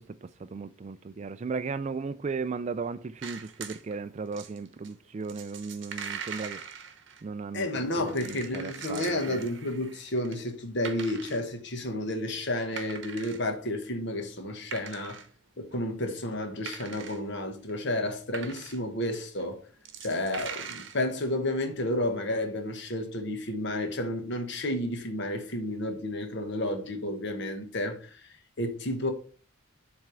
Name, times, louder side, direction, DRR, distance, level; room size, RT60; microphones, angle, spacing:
voice 1, 0.0-6.6 7.2-9.5, right 4 dB, 35° right, 0.3 m, -36 dB
sound 1, 3.2-3.9 4.3-7.2 7.8-10.4 10.7-11.4 12.1-12.2 12.5-13.5 13.9-14.0 14.4-15.3 15.6-15.7 16.5-17.2 17.7-18.9 19.4-19.5 19.7-21.0, right 7 dB, 55° right, 0.9 m, -42 dB
voice 2, 7.5-15.2 15.6-19.6 20.0-29.1, left 1 dB, 55° left, 1.3 m, -31 dB
7.4 x 3.5 x 6.2 m
head